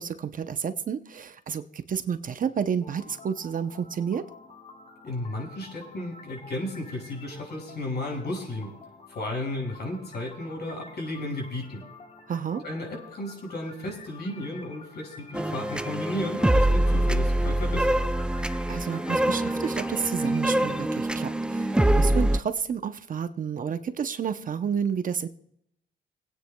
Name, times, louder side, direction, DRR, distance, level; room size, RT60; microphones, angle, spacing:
voice 1, 0.0-4.3 12.3-12.6 18.7-25.3, right 7 dB, 45° right, 10 dB, 0.7 m, -30 dB
sound 1, 2.8-20.8, left 3 dB, 30° left, 1.4 m, -49 dB
voice 2, 5.0-8.7 9.1-11.8 12.6-17.9, left 1 dB, 55° left, 0 dB, 6.0 m, -34 dB
sound 2, 15.3-22.4, right 1 dB, 5° right, 0.5 m, -24 dB
27.0 x 9.3 x 2.3 m, 0.73 s
cardioid pair, 90°, 20 cm